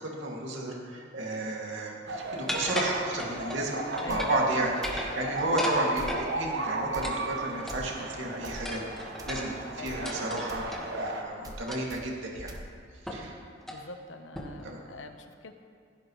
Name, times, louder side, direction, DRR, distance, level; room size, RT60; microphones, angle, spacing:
voice 1, 0.0-10.6 10.9-12.5 13.1-13.3 14.6-14.8, right 2 dB, 80° right, -2 dB, 2.5 m, -32 dB
sound 1, 2.1-11.2, right 2 dB, 65° right, 1.4 m, -35 dB
sound 2, 2.5-3.6 4.0-4.5 4.7-6.3 7.0-8.0 8.6-10.8 11.7-12.0 12.4-12.5 13.1-13.3 13.6-13.8 14.3-14.7, equal, ahead, 1.6 m, -36 dB
voice 2, 4.0-4.3 9.8-10.5 13.7-15.5, left 2 dB, 90° left, 6 dB, 1.0 m, -44 dB
sound 3, 4.1-4.2 4.8-5.0 6.0-6.2 6.9-7.1 7.7-7.8 8.4-8.6 9.2-9.4 9.9-10.0 10.5-10.7 11.4-11.6 11.9-12.0 12.5-12.6, right 1 dB, 20° right, 1.1 m, -42 dB
16.5 x 15.5 x 3.2 m, 2.2 s
head